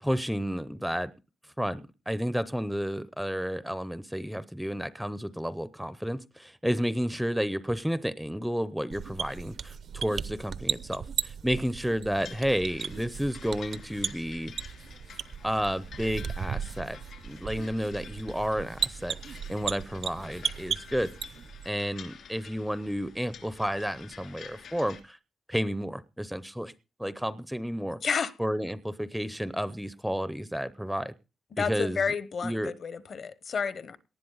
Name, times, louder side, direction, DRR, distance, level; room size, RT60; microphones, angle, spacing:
voice 1, 0.0-1.1 1.6-14.5 15.4-19.1 19.5-21.1 21.7-25.2 25.5-26.7 27.0-28.0 28.4-31.1 31.6-32.0 32.4-32.7, equal, ahead, 0.6 m, -31 dB
sound 1, 8.9-21.7, right 7 dB, 60° right, 0.7 m, -36 dB
sound 2, 12.1-25.0, left 7 dB, 70° left, 3.0 m, -50 dB
voice 2, 28.0-28.3 31.5-34.0, left 6 dB, 50° left, 1.0 m, -30 dB
18.5 x 11.5 x 3.9 m
wide cardioid pair, 170°, 0 cm